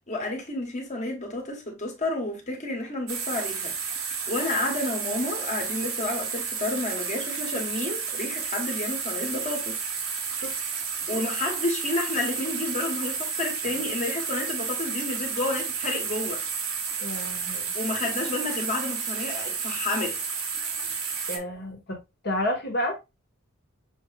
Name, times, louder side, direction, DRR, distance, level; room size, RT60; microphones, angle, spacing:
voice 1, 0.1-9.8 11.1-16.4 17.7-20.2, left 2 dB, 35° left, 1.5 m, -30 dB
sound 1, 3.1-21.4, right 6 dB, 65° right, 1.1 m, -31 dB
voice 2, 17.0-17.7 21.3-22.0 22.2-23.0, left 1 dB, 50° left, 1.4 m, -30 dB
6.6 x 3.1 x 2.3 m
head